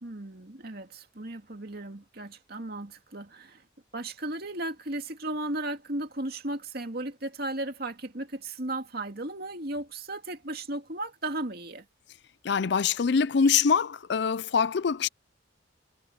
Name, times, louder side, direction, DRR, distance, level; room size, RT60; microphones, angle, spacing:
voice 1, 0.0-3.6 3.9-11.8, right 2 dB, 55° right, 2.4 m, -35 dB
voice 2, 12.4-15.1, left 6 dB, 60° left, 0.5 m, -24 dB
head